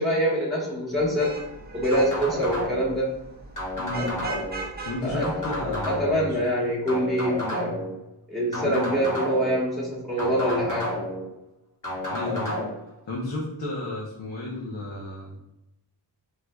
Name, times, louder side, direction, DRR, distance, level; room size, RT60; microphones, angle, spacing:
voice 1, 0.0-1.4 1.7-3.1 5.0-5.3 5.8-7.8 8.3-10.9, equal, ahead, -5 dB, 1.2 m, -25 dB
Vehicle horn car horn honking / Traffic noise roadway noise, 1.0-6.2, right 2 dB, 20° right, 0.5 m, -39 dB
sound 1, 1.9-3.0 3.6-4.6 5.2-6.3 6.9-7.9 8.5-9.6 10.2-11.2 11.8-12.7, left 1 dB, 45° left, 1.2 m, -31 dB
voice 2, 3.7-4.3 4.8-6.4 8.6-8.9 11.9-12.6 13.1-15.3, left 2 dB, 70° left, -3 dB, 0.8 m, -33 dB
4.7 x 2.4 x 2.3 m, 0.87 s
wide cardioid pair, 70°, 45 cm